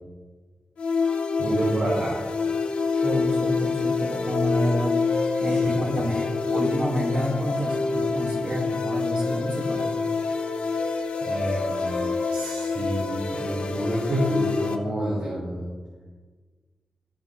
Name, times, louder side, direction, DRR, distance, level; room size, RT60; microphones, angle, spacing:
sound 1, 0.8-14.7, left 4 dB, 70° left, 0.9 m, -27 dB
voice 1, 1.4-2.1 5.4-5.6 6.0-6.1 11.2-15.7, right 1 dB, 85° right, -8 dB, 3.2 m, -28 dB
voice 2, 3.0-5.0 5.4-9.9, equal, 45° right, -3 dB, 2.6 m, -28 dB
13.5 x 9.5 x 2.6 m, 1.4 s
wide cardioid pair, 135°, 2 cm